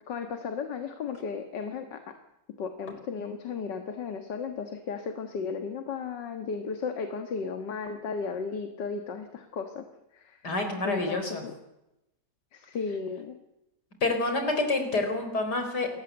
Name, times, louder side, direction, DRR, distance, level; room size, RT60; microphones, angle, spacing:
voice 1, 0.1-2.0 2.6-9.8 10.1-10.4 10.8-11.5 12.5-13.4, left 5 dB, 80° left, 7 dB, 2.2 m, -35 dB
voice 2, 10.4-11.4 14.0-16.0, left 2 dB, 65° left, 6 dB, 4.8 m, -28 dB
29.0 x 14.5 x 8.1 m, 0.91 s
omnidirectional pair, 1.9 m